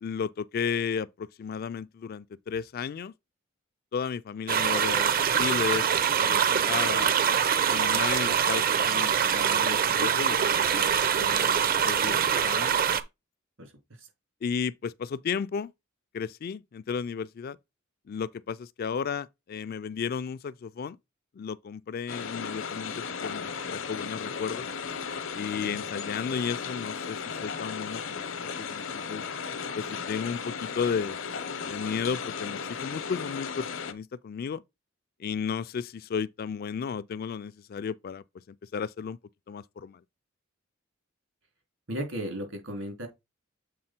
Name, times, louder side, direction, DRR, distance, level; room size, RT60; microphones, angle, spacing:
voice 1, 0.0-3.1 3.9-5.1 5.4-5.9 6.2-7.1 7.7-12.8 14.4-15.7 16.1-17.6 18.1-21.0 21.4-24.7 25.3-29.2 29.8-31.2 31.7-34.6 35.2-39.2 39.5-40.0, left 6 dB, 50° left, 0.3 m, -34 dB
sound 1, 4.5-13.0, right 8 dB, 45° right, 0.5 m, -24 dB
sound 2, 22.1-33.9, left 6 dB, 65° left, 0.7 m, -35 dB
voice 2, 41.9-43.1, equal, 75° right, 2.9 m, -34 dB
7.6 x 3.8 x 4.3 m
head